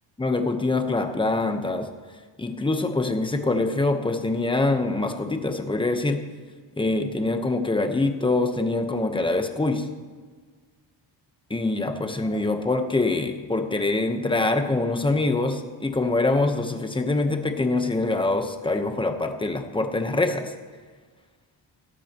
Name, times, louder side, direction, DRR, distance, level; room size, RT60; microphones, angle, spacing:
voice 1, 0.2-1.9 2.4-6.2 6.8-9.9 11.5-20.5, left 2 dB, 10° left, 6 dB, 1.0 m, -24 dB
17.5 x 13.5 x 3.0 m, 1.5 s
cardioid pair, 130°, 44 cm